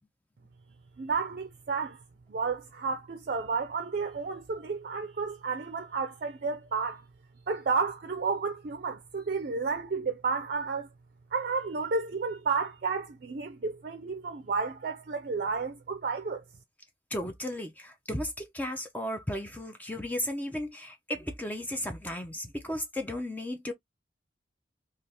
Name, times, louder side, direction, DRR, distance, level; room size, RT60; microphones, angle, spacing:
voice 1, 1.0-2.0 2.3-7.0 7.5-10.9 11.3-16.4, right 4 dB, 50° right, 0.5 m, -31 dB
voice 2, 17.1-23.7, left 1 dB, 10° left, 0.5 m, -35 dB
3.3 x 2.4 x 2.7 m
head